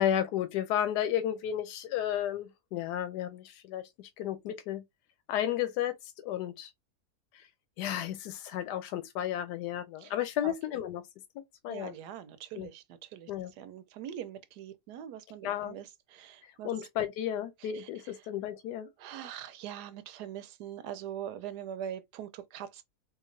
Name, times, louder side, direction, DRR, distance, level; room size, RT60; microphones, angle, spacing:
voice 1, 0.0-4.8 5.3-6.7 7.3-7.5 7.8-11.0 11.6-11.9 12.6-12.7 13.3-13.5 15.4-15.8 16.4-18.9, left 10 dB, 90° left, 1.2 m, -33 dB
voice 2, 11.7-13.3 13.6-16.7 17.6-17.9 19.0-22.8, right 10 dB, 90° right, 1.2 m, -42 dB
3.8 x 2.9 x 2.6 m
omnidirectional pair, 1.7 m